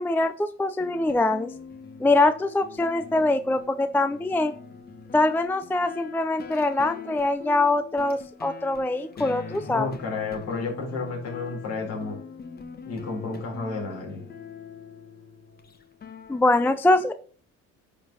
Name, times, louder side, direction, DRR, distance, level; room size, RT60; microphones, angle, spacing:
voice 1, 0.0-1.5 2.0-4.5 5.1-9.9 16.3-17.1, left 2 dB, 5° left, 11 dB, 0.4 m, -23 dB
sound 1, 0.8-16.4, left 6 dB, 30° left, 1.2 m, -42 dB
voice 2, 9.7-12.2 12.8-14.2, left 4 dB, 55° left, 0 dB, 4.5 m, -31 dB
10.5 x 4.8 x 5.4 m, 0.43 s
cardioid pair, 135°, 29 cm